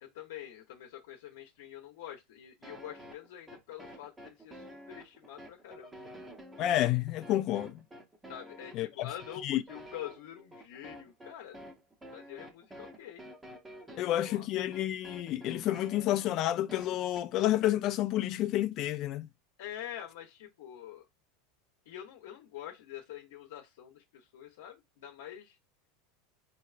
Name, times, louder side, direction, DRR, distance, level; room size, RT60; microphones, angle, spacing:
voice 1, 0.0-6.0 8.3-11.7 12.1-13.2 13.9-14.5 19.6-21.1 21.9-25.5, left 11 dB, 80° left, 0.8 m, -46 dB
sound 1, 2.6-17.5, equal, 10° right, 0.7 m, -50 dB
voice 2, 6.6-7.7 8.7-9.1 9.4-9.6 14.0-19.3, left 13 dB, 40° left, 0.3 m, -30 dB
4.3 x 2.9 x 2.4 m
supercardioid pair, 145°, 0 cm